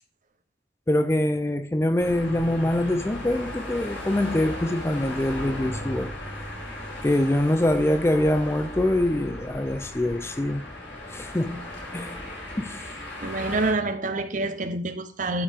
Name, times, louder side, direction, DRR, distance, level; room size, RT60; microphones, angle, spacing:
voice 1, 0.9-6.1 7.0-10.6 11.1-11.6 11.9-12.2 12.5-12.9, left 1 dB, 15° left, 0.4 m, -24 dB
sound 1, 2.0-13.7, left 1 dB, 70° left, 5.0 m, -36 dB
voice 2, 13.2-15.4, right 2 dB, 40° right, 0.9 m, -27 dB
12.5 x 5.4 x 3.6 m
head